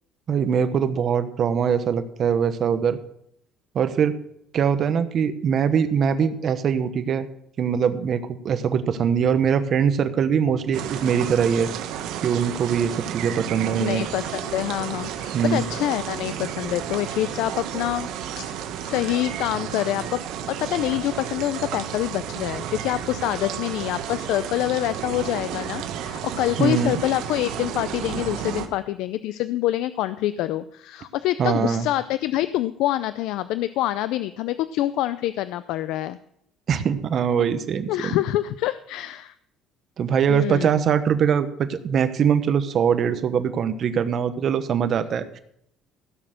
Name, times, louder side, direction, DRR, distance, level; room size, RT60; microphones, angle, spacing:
voice 1, 0.3-3.0 3.7-4.2 4.5-7.3 7.6-11.7 12.2-14.0 15.3-15.6 26.6-27.0 31.4-31.9 36.7-38.2 40.0-45.4, right 7 dB, 45° right, 10 dB, 1.1 m, -22 dB
sound 1, 10.7-28.7, right 9 dB, 75° right, 1.3 m, -32 dB
voice 2, 13.8-18.1 18.4-36.2 37.9-39.3 40.3-40.7, left 14 dB, 80° left, 14 dB, 0.5 m, -26 dB
16.0 x 6.6 x 6.5 m, 0.72 s
cardioid pair, 135°, 0 cm